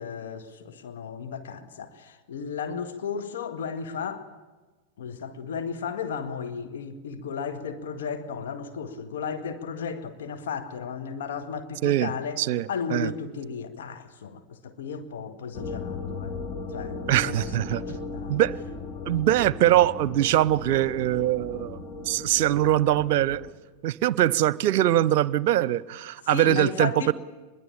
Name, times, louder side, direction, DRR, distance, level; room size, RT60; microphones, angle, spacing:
voice 1, 0.0-4.3 5.0-12.4 12.7-16.4 16.7-18.4 26.3-27.1, left 6 dB, 65° left, 8 dB, 2.0 m, -34 dB
voice 2, 12.4-13.1 17.1-17.8 18.3-18.6 19.1-21.8 22.1-23.4 23.8-27.1, right 13 dB, 50° right, 21 dB, 0.7 m, -22 dB
sound 1, 15.5-23.5, left 4 dB, 40° left, 2.4 m, -37 dB
25.5 x 22.0 x 8.8 m, 1.2 s
figure-of-eight pair, 90°, 0 cm